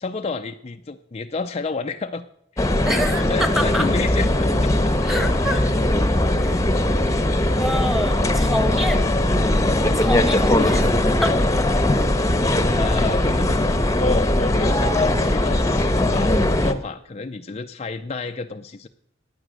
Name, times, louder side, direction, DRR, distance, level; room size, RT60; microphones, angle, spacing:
voice 1, 0.0-2.3 2.5-2.6 3.3-5.0 5.5-5.8 10.4-10.9 12.8-13.7 14.0-15.9 16.1-18.9, left 3 dB, 35° left, 6 dB, 0.5 m, -30 dB
sound 1, 2.6-16.7, left 1 dB, 15° left, 1.0 m, -20 dB
voice 2, 2.8-3.9 5.0-5.6 6.4-6.7 7.1-7.2 7.6-9.1 9.9-11.4, equal, ahead, 8 dB, 1.4 m, -26 dB
15.5 x 9.8 x 6.3 m, 0.73 s
head